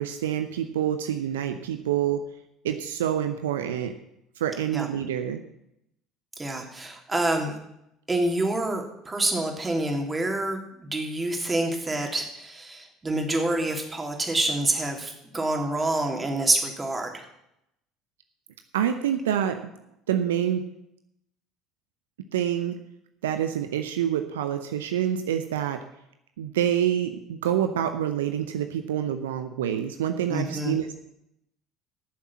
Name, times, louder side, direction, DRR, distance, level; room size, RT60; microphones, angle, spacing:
voice 1, 0.0-2.2 2.6-3.9 4.4-5.4 18.7-19.6 20.1-20.6 22.3-22.8 23.2-25.8 26.4-31.0, right 10 dB, 80° right, 8 dB, 0.7 m, -27 dB
voice 2, 6.4-7.5 8.1-17.1 30.3-30.7, right 2 dB, 20° right, 3 dB, 3.1 m, -27 dB
13.5 x 7.3 x 7.2 m, 0.79 s
hypercardioid pair, 65°, 0 cm